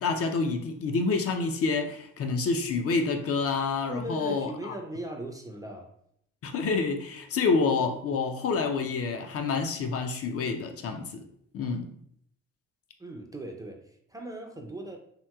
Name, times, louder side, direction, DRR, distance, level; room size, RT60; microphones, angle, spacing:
voice 1, 0.0-4.8 6.4-11.2 11.5-11.9, left 4 dB, 50° left, 5 dB, 0.4 m, -28 dB
voice 2, 3.9-5.9 13.0-15.0, right 1 dB, 10° right, 1 dB, 0.4 m, -38 dB
2.9 x 2.8 x 2.2 m, 0.69 s
cardioid pair, 90°, 30 cm